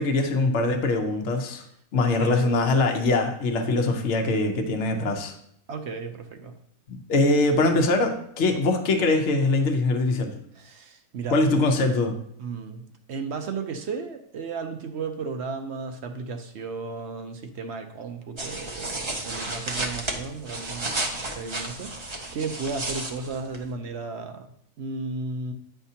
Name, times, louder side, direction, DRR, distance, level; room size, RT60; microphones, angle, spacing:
voice 1, 0.0-1.6 1.9-5.3 6.9-10.3 11.3-12.2, left 2 dB, 60° left, 4 dB, 1.0 m, -23 dB
voice 2, 2.2-2.7 5.7-6.5 10.5-11.4 12.4-24.5 24.8-25.5, right 4 dB, 60° right, 6 dB, 0.8 m, -34 dB
sound 1, 18.4-23.7, right 2 dB, 30° right, 0.6 m, -33 dB
9.1 x 5.7 x 2.8 m, 0.69 s
omnidirectional pair, 1.4 m